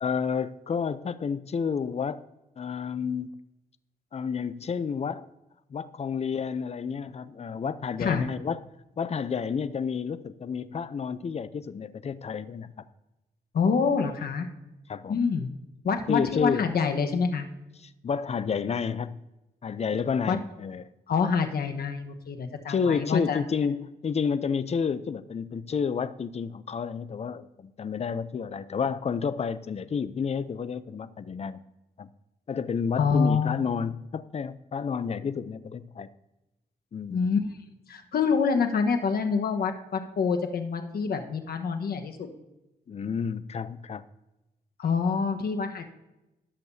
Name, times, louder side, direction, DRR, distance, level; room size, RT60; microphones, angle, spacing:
voice 1, 0.0-2.2 2.6-3.4 4.1-5.3 5.7-8.6 9.0-12.7 14.9-15.3 16.1-16.7 17.8-19.2 19.6-20.9 22.7-31.6 32.0-32.1 32.5-36.1 36.9-37.3 42.9-44.0, left 6 dB, 40° left, 15 dB, 0.5 m, -30 dB
voice 2, 13.5-14.5 15.1-15.5 15.8-17.4 20.3-20.4 21.1-23.4 33.0-33.6 37.1-37.4 37.9-42.3 44.8-45.8, left 5 dB, 70° left, 6 dB, 1.2 m, -26 dB
16.5 x 6.7 x 2.7 m, 0.99 s
cardioid pair, 95°, 17 cm